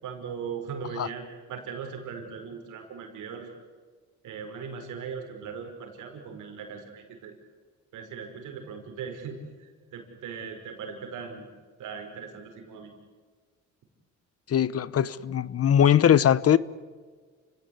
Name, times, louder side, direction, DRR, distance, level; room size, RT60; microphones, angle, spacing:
voice 1, 0.0-3.5 4.2-7.3 7.9-11.5 11.8-12.9, right 6 dB, 85° right, 5.6 m, -39 dB
voice 2, 14.5-16.6, left 9 dB, 50° left, 1.0 m, -21 dB
29.0 x 17.5 x 9.7 m
cardioid pair, 90°, 30 cm